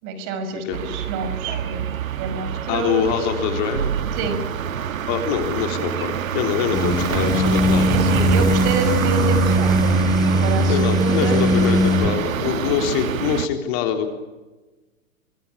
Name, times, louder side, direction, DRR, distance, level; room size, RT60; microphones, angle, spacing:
voice 1, 0.0-3.1 4.1-4.4 7.9-11.4, right 3 dB, 35° right, 9 dB, 5.6 m, -28 dB
sound 1, 0.7-13.5, right 9 dB, 70° right, 1.6 m, -26 dB
voice 2, 2.7-3.9 5.1-7.9 10.7-14.1, left 8 dB, 40° left, 6 dB, 3.6 m, -24 dB
sound 2, 6.7-12.1, equal, 10° left, 2.7 m, -19 dB
24.5 x 23.0 x 8.7 m, 1.2 s
hypercardioid pair, 120°, 42 cm